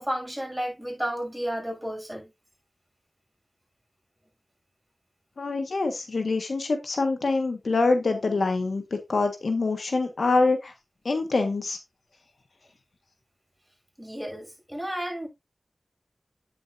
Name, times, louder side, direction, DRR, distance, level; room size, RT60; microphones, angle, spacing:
voice 1, 0.0-2.3 14.0-15.3, equal, 5° right, 6.3 m, -32 dB
voice 2, 5.4-10.7 11.0-11.8, left 3 dB, 85° left, 1.5 m, -25 dB
9.0 x 7.5 x 2.6 m
wide cardioid pair, 50°, 0 cm